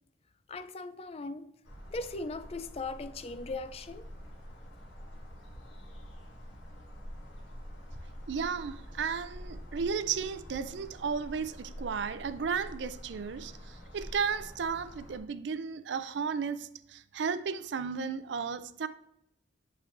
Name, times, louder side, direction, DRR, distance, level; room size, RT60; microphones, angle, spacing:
voice 1, 0.5-1.5 1.9-4.1, left 3 dB, 35° left, 0.4 m, -39 dB
sound 1, 1.6-15.2, equal, 80° left, 2.0 m, -47 dB
voice 2, 8.3-18.9, right 6 dB, 70° right, 0.4 m, -34 dB
8.6 x 7.4 x 2.6 m
head